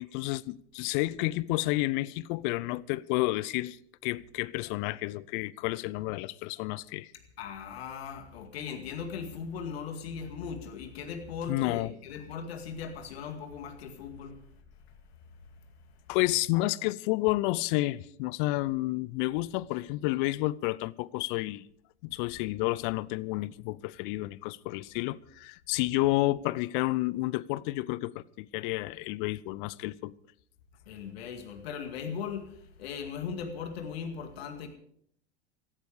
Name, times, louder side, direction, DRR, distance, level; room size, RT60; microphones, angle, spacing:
voice 1, 0.0-3.8 4.0-7.1 11.5-11.9 16.1-21.6 22.0-30.1, left 19 dB, 50° left, 0.7 m, -30 dB
voice 2, 7.4-14.4 30.9-34.7, left 6 dB, 65° left, 2.1 m, -38 dB
17.5 x 13.5 x 4.9 m
figure-of-eight pair, 85°, 33 cm